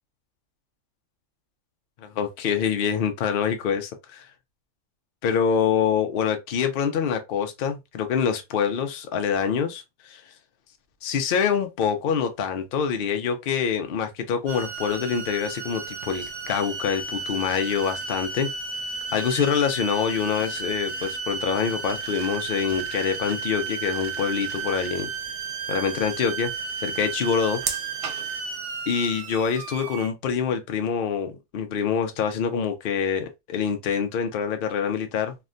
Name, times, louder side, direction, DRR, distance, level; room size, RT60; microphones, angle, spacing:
voice 1, 2.0-4.3 5.2-10.2 11.0-18.5 19.1-25.1 25.7-26.5 26.8-27.6 28.9-35.4, left 7 dB, 80° left, 0.4 m, -25 dB
sound 1, 14.5-30.1, right 5 dB, 70° right, 0.7 m, -33 dB
3.2 x 2.1 x 2.5 m
omnidirectional pair, 1.7 m